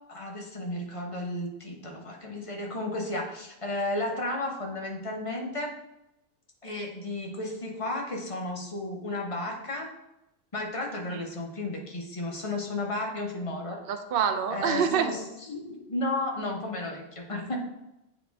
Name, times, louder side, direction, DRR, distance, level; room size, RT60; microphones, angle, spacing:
voice 1, 0.1-5.7 6.6-9.9 10.5-13.8 14.5-15.2 15.5-17.6, left 2 dB, 30° left, 0 dB, 1.0 m, -33 dB
voice 2, 13.9-15.1, right 7 dB, 60° right, 8 dB, 0.6 m, -26 dB
9.3 x 3.2 x 3.5 m, 0.89 s
omnidirectional pair, 1.3 m